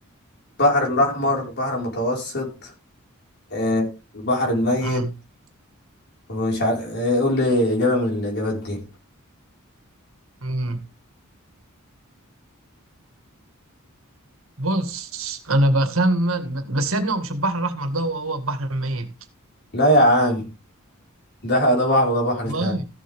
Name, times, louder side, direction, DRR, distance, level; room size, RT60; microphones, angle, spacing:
voice 1, 0.6-2.7 3.5-3.9 4.1-5.0 6.3-8.8 19.7-20.5 21.4-22.8, left 1 dB, 50° left, 5.2 m, -21 dB
voice 2, 10.4-10.8 14.6-19.1 22.4-22.9, right 1 dB, 70° right, 2.0 m, -24 dB
15.5 x 7.8 x 3.6 m
head